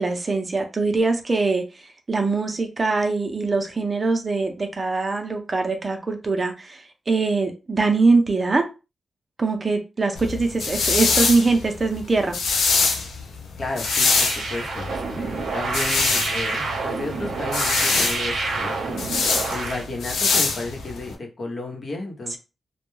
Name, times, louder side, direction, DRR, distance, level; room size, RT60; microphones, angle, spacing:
voice 1, 0.0-1.6 2.1-8.6 9.4-12.4, right 3 dB, 35° right, 5 dB, 0.6 m, -22 dB
sound 1, 10.2-21.1, left 4 dB, 90° left, 0.5 m, -24 dB
voice 2, 13.6-19.1 19.5-22.4, left 2 dB, 50° left, 1 dB, 0.9 m, -33 dB
sound 2, 13.8-19.8, right 3 dB, 80° right, 0.6 m, -28 dB
2.2 x 2.2 x 3.1 m, 0.29 s
cardioid pair, 70°, 0 cm